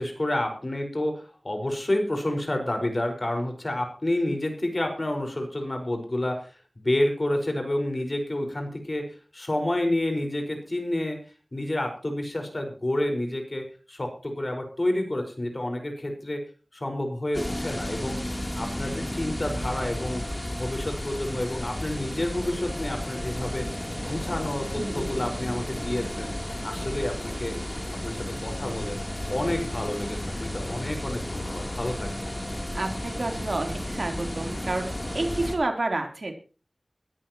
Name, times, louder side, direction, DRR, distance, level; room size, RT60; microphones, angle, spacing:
voice 1, 0.0-6.5 6.8-11.2 11.5-16.4 16.7-18.2 18.6-20.2 20.6-23.7 24.0-26.3 26.6-27.6 28.0-29.0 29.3-32.3, left 1 dB, 40° left, 4 dB, 5.3 m, -29 dB
sound 1, 17.3-35.6, left 1 dB, 25° left, 3.4 m, -33 dB
voice 2, 24.7-25.3 32.7-36.3, right 2 dB, 60° right, 3 dB, 3.7 m, -30 dB
21.0 x 14.0 x 3.1 m, 0.35 s
wide cardioid pair, 65°, 0 cm